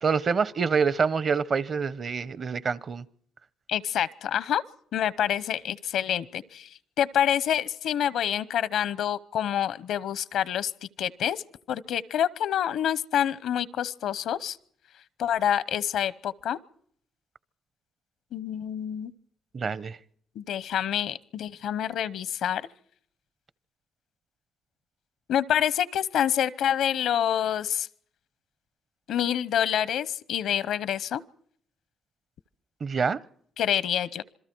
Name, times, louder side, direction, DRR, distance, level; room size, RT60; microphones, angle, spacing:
voice 1, 0.0-3.0 19.5-20.0 32.8-33.2, right 5 dB, 45° right, 0.8 m, -26 dB
voice 2, 3.7-4.6 4.9-6.7 7.0-10.7 11.0-11.4 11.7-14.6 15.2-16.6 18.3-19.1 20.4-22.6 25.3-27.9 29.1-31.2 33.6-34.2, left 10 dB, 75° left, 0.8 m, -27 dB
27.0 x 22.0 x 4.6 m
cardioid pair, 90°, 0 cm